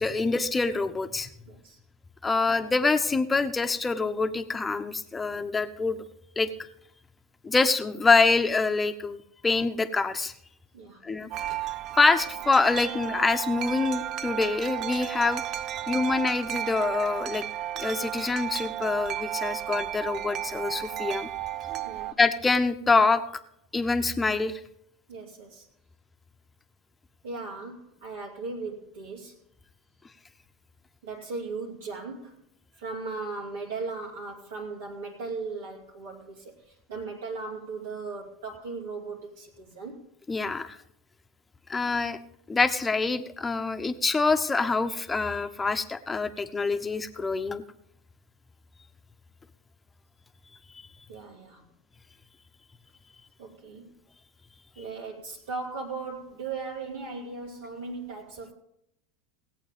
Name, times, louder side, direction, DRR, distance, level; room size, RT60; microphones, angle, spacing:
voice 1, 0.0-1.3 2.2-6.0 6.4-6.7 7.4-10.3 11.0-11.3 12.0-15.4 15.9-17.4 17.8-21.3 22.2-23.2 23.7-24.6 40.3-40.8 41.7-42.2 42.5-47.6, left 3 dB, 15° left, 8 dB, 1.0 m, -25 dB
voice 2, 1.5-1.8 2.3-2.5 10.7-11.0 21.8-22.2 25.1-25.7 27.2-29.4 31.0-32.4 32.8-40.0 51.1-51.6 53.4-53.9 54.8-58.5, right 4 dB, 75° right, -4 dB, 2.7 m, -37 dB
Wind chime, 11.3-22.1, right 12 dB, 45° right, 0.4 m, -33 dB
17.5 x 8.5 x 5.2 m, 0.76 s
hypercardioid pair, 90°, 0 cm